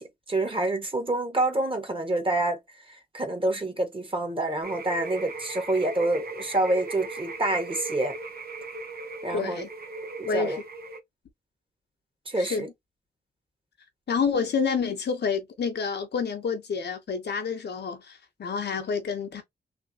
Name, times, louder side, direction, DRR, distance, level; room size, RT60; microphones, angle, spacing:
voice 1, 0.0-2.6 2.9-8.2 9.2-9.6 10.2-10.6 12.3-12.7, right 2 dB, 30° right, 1.5 m, -27 dB
sound 1, 4.6-11.0, right 3 dB, 55° right, 1.0 m, -38 dB
voice 2, 9.3-9.7 10.2-10.6 12.4-12.7 14.1-19.4, left 5 dB, 65° left, 1.0 m, -28 dB
3.3 x 2.9 x 2.9 m
cardioid pair, 75°, 19 cm